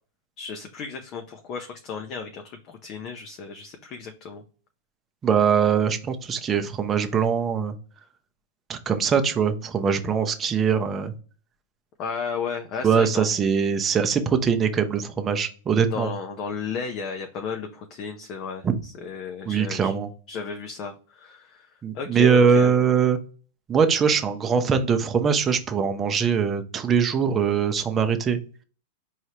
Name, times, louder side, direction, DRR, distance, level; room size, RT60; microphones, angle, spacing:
voice 1, 0.4-4.4 12.0-13.3 15.9-19.9 20.3-22.7, left 5 dB, 35° left, 5 dB, 0.6 m, -34 dB
voice 2, 5.2-7.7 8.7-11.1 12.8-16.1 18.6-18.7 19.5-20.1 21.8-23.2 23.7-28.4, right 6 dB, 20° right, 7 dB, 0.6 m, -22 dB
4.5 x 3.2 x 2.8 m, 0.40 s
supercardioid pair, 145°, 0 cm